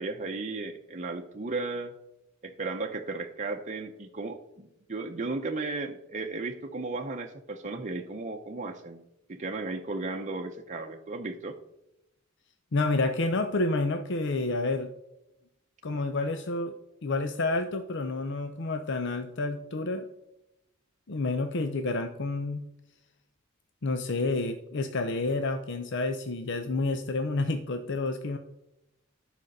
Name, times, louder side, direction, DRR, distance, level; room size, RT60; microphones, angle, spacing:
voice 1, 0.0-1.9 2.4-9.0 9.3-11.6, right 3 dB, 35° right, 2 dB, 0.7 m, -35 dB
voice 2, 12.7-14.9 15.8-16.7 17.0-20.0 21.1-22.6 23.8-28.4, left 2 dB, 60° left, 7 dB, 0.7 m, -29 dB
11.0 x 5.1 x 6.5 m, 0.88 s
head